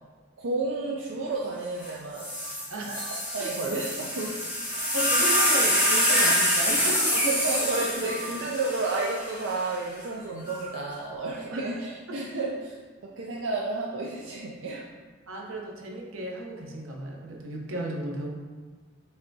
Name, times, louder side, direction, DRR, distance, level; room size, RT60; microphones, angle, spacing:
voice 1, 0.4-2.3 3.0-4.4 6.1-6.2 7.1-12.8 13.2-14.9, right 3 dB, 70° right, -2 dB, 0.4 m, -31 dB
sound 1, 1.8-1.9 2.2-9.6 10.5-10.9, equal, 10° right, 1.1 m, -26 dB
voice 2, 2.7-3.1 3.4-3.5 4.9-7.4 7.8-8.2 11.5-11.7 12.1-12.2 15.3-18.3, right 1 dB, 90° right, 0 dB, 0.7 m, -35 dB
5.4 x 3.4 x 2.6 m, 1.4 s
head